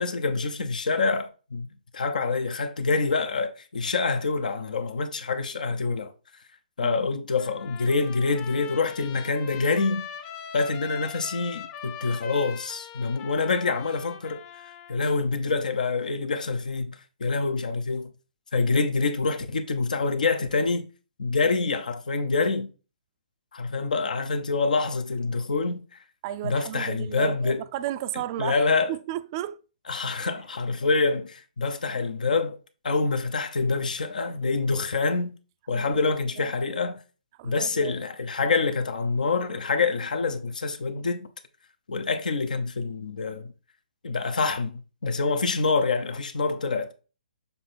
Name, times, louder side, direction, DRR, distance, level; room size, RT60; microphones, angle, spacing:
voice 1, 0.0-1.7 1.9-6.1 6.8-10.0 10.5-14.4 14.9-18.1 18.5-20.8 21.2-22.7 23.5-25.8 26.4-27.6 28.4-28.9 29.9-32.6 32.8-35.3 35.7-37.0 37.4-41.3 41.9-43.5 44.0-46.9, left 4 dB, 70° left, 0.9 m, -26 dB
Trumpet, 7.4-15.0, left 9 dB, 30° left, 0.7 m, -41 dB
voice 2, 26.2-29.6 30.1-30.3 35.7-36.0 36.4-36.5 37.4-38.0, right 13 dB, 35° right, 0.5 m, -34 dB
7.2 x 3.4 x 4.3 m
figure-of-eight pair, 135°, 4 cm